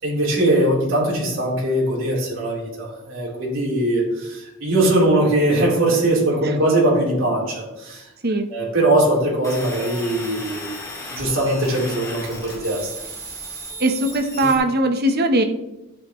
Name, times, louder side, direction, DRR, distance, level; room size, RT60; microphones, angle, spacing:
voice 1, 0.0-8.0 8.5-10.7 11.1-12.9, right 1 dB, 70° right, -5 dB, 3.8 m, -20 dB
sound 1, 9.4-14.5, equal, 15° left, 2.4 m, -35 dB
voice 2, 13.8-15.4, right 1 dB, 50° right, 6 dB, 1.1 m, -20 dB
11.5 x 9.7 x 3.2 m, 0.96 s
head